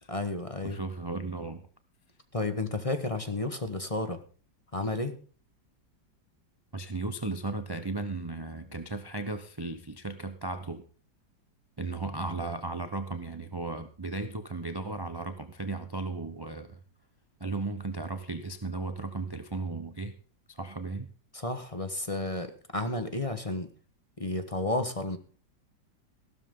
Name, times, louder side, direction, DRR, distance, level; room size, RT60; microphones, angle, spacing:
voice 1, 0.1-0.8 2.3-4.2 4.7-5.1 21.3-23.7 24.2-25.2, left 2 dB, 20° left, 8 dB, 1.0 m, -32 dB
voice 2, 0.6-1.6 6.7-10.8 11.8-16.8 17.4-20.1 20.5-21.1, right 3 dB, 30° right, 9 dB, 0.4 m, -35 dB
15.0 x 12.5 x 3.7 m, 0.40 s
omnidirectional pair, 2.0 m